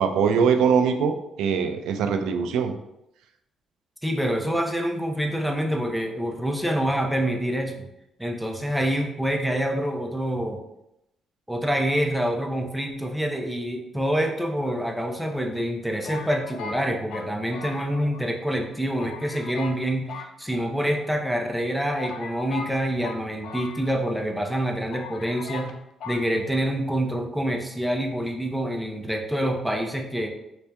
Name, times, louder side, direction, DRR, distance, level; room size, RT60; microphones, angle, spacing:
voice 1, 0.0-2.7, right 6 dB, 85° right, 7 dB, 0.4 m, -22 dB
voice 2, 4.0-7.9 8.2-10.6 11.5-25.7 26.0-30.3, equal, 5° right, 2 dB, 0.6 m, -26 dB
sound 1, 14.6-15.3 16.0-18.3 18.6-18.7 19.0-19.8 20.1-21.1 21.6-21.7 22.0-24.3 24.5-24.6 24.9-25.7 26.0-26.2, left 6 dB, 80° left, 0.4 m, -39 dB
3.3 x 2.8 x 3.4 m, 0.85 s
cardioid pair, 90°, 0 cm